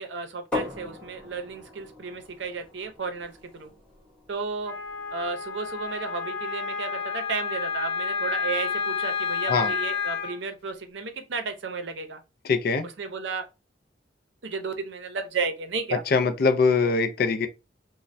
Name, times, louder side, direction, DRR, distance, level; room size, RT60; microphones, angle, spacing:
voice 1, 0.0-3.7 4.3-4.7 5.1-12.2 12.8-13.5 14.4-16.0, right 4 dB, 75° right, 0.6 m, -33 dB
sound 1, 0.5-6.2, left 3 dB, 5° left, 0.9 m, -39 dB
Wind instrument woodwind instrument, 4.6-10.3, left 5 dB, 30° left, 1.4 m, -30 dB
voice 2, 12.4-12.9 16.1-17.5, left 4 dB, 55° left, 0.4 m, -22 dB
3.2 x 2.1 x 2.5 m
head